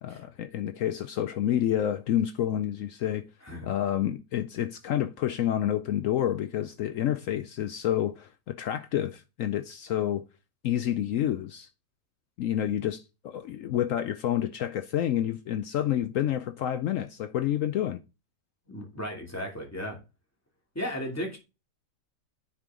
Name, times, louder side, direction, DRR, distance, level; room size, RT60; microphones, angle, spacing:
voice 1, 0.0-3.3 3.6-10.2 10.6-11.7 12.4-18.0, left 11 dB, 80° left, 0.7 m, -29 dB
voice 2, 18.7-20.0 20.7-21.4, equal, 10° left, 2.6 m, -35 dB
9.7 x 4.5 x 3.7 m
omnidirectional pair, 1.9 m